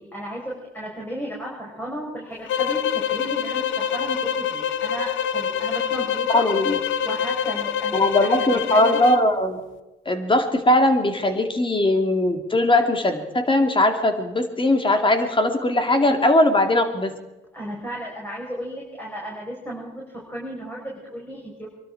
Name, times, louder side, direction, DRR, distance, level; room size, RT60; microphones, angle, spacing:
voice 1, 0.0-6.4 7.0-9.0 17.5-21.7, equal, 10° left, -3 dB, 5.4 m, -34 dB
sound 1, 2.5-9.3, left 8 dB, 75° left, 0.8 m, -25 dB
voice 2, 6.3-6.8 7.9-9.6 10.1-17.1, left 1 dB, 25° left, 6 dB, 2.5 m, -20 dB
23.5 x 12.5 x 4.8 m, 1.1 s
cardioid pair, 90°, 20 cm